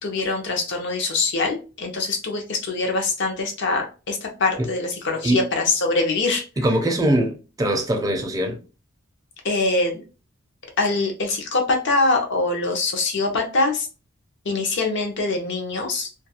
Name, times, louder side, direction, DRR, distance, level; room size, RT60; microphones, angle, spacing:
voice 1, 0.0-6.4 9.4-10.0 10.8-13.9 14.5-16.1, left 3 dB, 60° left, 0.7 m, -23 dB
voice 2, 6.6-8.6, right 1 dB, 15° right, 0.4 m, -22 dB
2.4 x 2.3 x 2.7 m
head